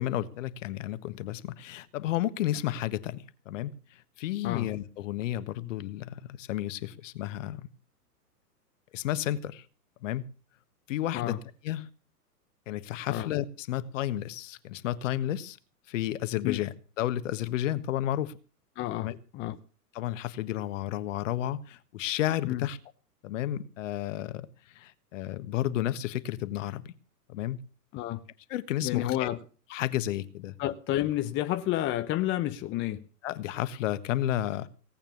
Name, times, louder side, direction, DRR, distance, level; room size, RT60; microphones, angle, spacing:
voice 1, 0.0-3.7 4.2-7.6 8.9-9.6 10.0-10.2 10.9-11.3 11.6-11.9 12.7-15.6 15.9-18.4 19.0-19.2 19.9-22.8 23.2-24.5 24.7-26.9 27.3-27.6 28.5-29.3 29.7-30.5 33.2-34.7, left 13 dB, 50° left, 1.5 m, -32 dB
voice 2, 18.8-19.6 22.4-22.7 27.9-28.2 28.8-29.4 30.6-33.0, left 14 dB, 25° left, 0.8 m, -30 dB
18.0 x 8.8 x 7.0 m
figure-of-eight pair, 105°, 48 cm